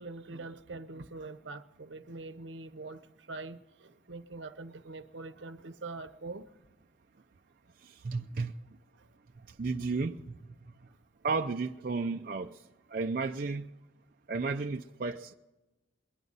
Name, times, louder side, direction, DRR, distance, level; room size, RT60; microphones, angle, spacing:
voice 1, 0.0-6.5 8.9-9.1, right 3 dB, 75° right, 0.8 m, -44 dB
voice 2, 7.8-8.5 9.6-10.2 11.2-12.5 12.9-13.7 14.3-15.3, right 4 dB, 50° right, 0.4 m, -33 dB
22.5 x 11.0 x 4.0 m
head